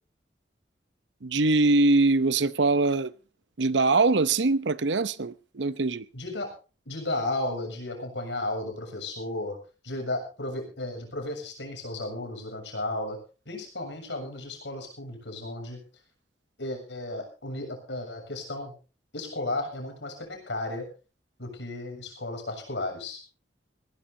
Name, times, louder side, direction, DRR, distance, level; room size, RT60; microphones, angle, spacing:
voice 1, 1.2-3.1 3.6-6.0, right 3 dB, 80° right, 0.8 m, -23 dB
voice 2, 6.1-6.5 6.9-9.6 9.8-13.2 13.5-15.8 16.6-18.7 19.1-20.9 21.4-23.2, left 2 dB, 80° left, 7.1 m, -34 dB
20.0 x 19.0 x 2.8 m
head